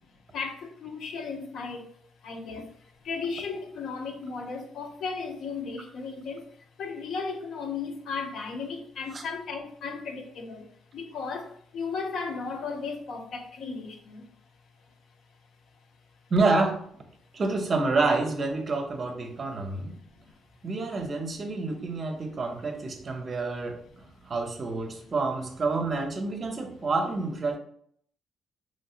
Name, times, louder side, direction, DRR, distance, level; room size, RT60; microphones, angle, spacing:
voice 1, 0.3-1.8 2.2-2.6 3.1-6.4 6.8-10.7 10.9-11.5 11.7-14.2, left 4 dB, 70° left, 4 dB, 0.5 m, -35 dB
voice 2, 16.3-16.8 17.3-20.0 20.6-27.6, right 3 dB, 40° right, 5 dB, 0.6 m, -28 dB
3.1 x 2.7 x 2.4 m, 0.63 s
cardioid pair, 90°, 0 cm